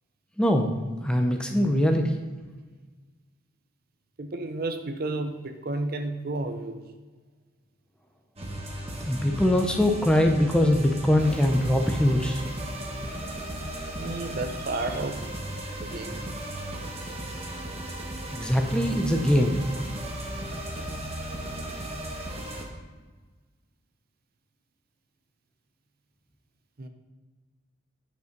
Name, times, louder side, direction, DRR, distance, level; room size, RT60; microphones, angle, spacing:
voice 1, 0.4-0.8 1.0-2.2 9.0-12.4 18.3-19.6, left 1 dB, 5° left, 3 dB, 0.6 m, -22 dB
voice 2, 4.2-6.8 14.0-15.2 15.8-16.2 19.1-19.2 26.8-26.9, right 2 dB, 50° right, 7 dB, 0.6 m, -32 dB
sound 1, 8.4-22.6, right 1 dB, 30° right, 1.3 m, -35 dB
9.2 x 5.5 x 5.2 m, 1.3 s
head